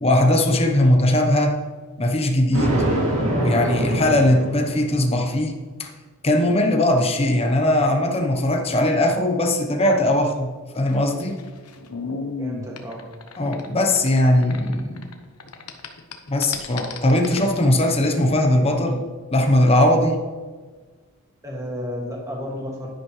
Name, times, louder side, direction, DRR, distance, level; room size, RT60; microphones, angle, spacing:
voice 1, 0.0-1.6 2.0-5.5 5.8-5.9 6.2-10.5 10.7-11.4 13.4-15.1 16.3-19.0 19.3-20.2, left 1 dB, 25° left, 3 dB, 0.9 m, -19 dB
Thunder, 2.5-5.1, right 1 dB, 65° right, 2.6 m, -24 dB
sound 1, 10.8-15.1 15.4-17.6, left 4 dB, 85° left, 1.0 m, -34 dB
voice 2, 12.4-13.1 21.4-22.9, left 1 dB, 15° right, -2 dB, 2.0 m, -32 dB
10.5 x 10.5 x 3.2 m, 1.4 s
head